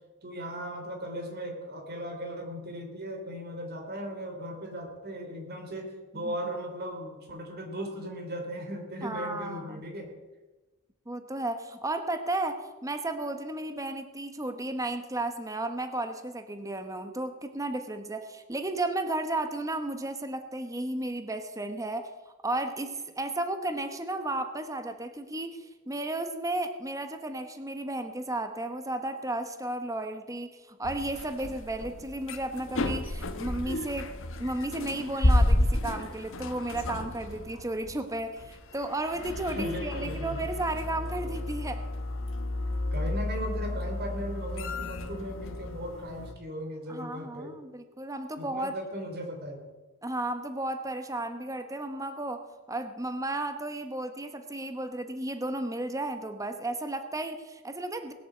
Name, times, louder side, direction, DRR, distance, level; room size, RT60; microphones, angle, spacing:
voice 1, 0.2-10.1 39.5-40.4 42.9-47.6 48.4-49.7, equal, 50° right, 2 dB, 3.2 m, -37 dB
voice 2, 9.0-9.8 11.1-22.1 22.4-34.1 34.4-41.8 46.9-48.7 50.0-58.1, right 2 dB, 15° right, 7 dB, 1.1 m, -33 dB
sound 1, 30.8-46.3, left 1 dB, 65° left, 1.3 m, -31 dB
20.0 x 8.6 x 7.8 m, 1.2 s
head